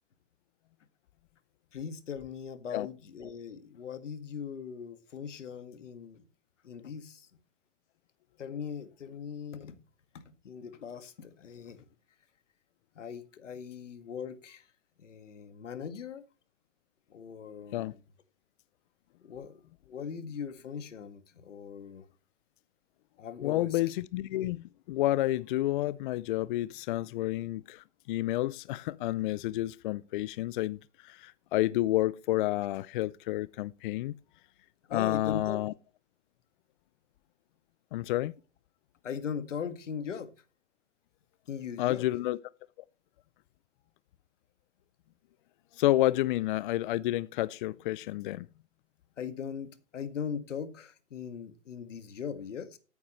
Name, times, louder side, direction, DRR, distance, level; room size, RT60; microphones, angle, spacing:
voice 1, 1.7-6.2 6.6-7.3 8.4-9.8 10.1-11.9 13.0-14.6 15.0-16.2 17.1-18.0 19.2-19.6 19.9-22.1 23.2-23.8 34.9-35.6 39.0-40.3 41.5-42.1 49.2-52.8, left 7 dB, 85° left, 1.9 m, -40 dB
voice 2, 23.4-34.1 34.9-35.7 37.9-38.3 41.8-42.4 45.7-48.5, left 16 dB, 45° left, 0.5 m, -30 dB
14.0 x 9.4 x 3.2 m
hypercardioid pair, 135°, 36 cm